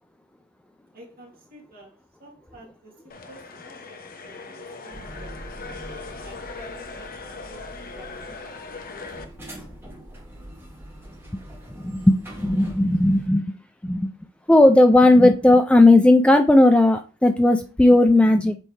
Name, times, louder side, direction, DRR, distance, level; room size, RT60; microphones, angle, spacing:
voice 1, 0.9-1.9 2.2-5.6 6.2-9.2, right 1 dB, 45° right, 2.7 m, -49 dB
sound 1, 3.1-9.2, left 3 dB, 40° left, 0.9 m, -39 dB
sound 2, 4.9-13.3, equal, 10° right, 2.3 m, -43 dB
voice 2, 11.8-13.4 13.8-14.1 14.5-18.6, left 1 dB, 5° left, 0.3 m, -16 dB
7.6 x 4.4 x 3.3 m
head